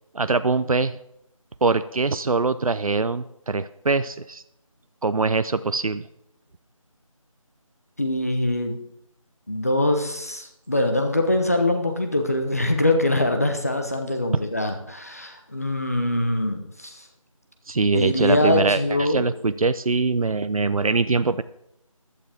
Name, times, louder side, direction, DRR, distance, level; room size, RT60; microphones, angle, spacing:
voice 1, 0.1-0.9 1.6-4.4 5.0-6.0 17.7-21.4, right 3 dB, 80° right, 13 dB, 0.6 m, -23 dB
voice 2, 8.0-8.8 9.5-17.0 17.8-19.3, left 1 dB, 25° left, 5 dB, 1.0 m, -23 dB
15.0 x 11.5 x 3.5 m, 0.79 s
figure-of-eight pair, 180°, 18 cm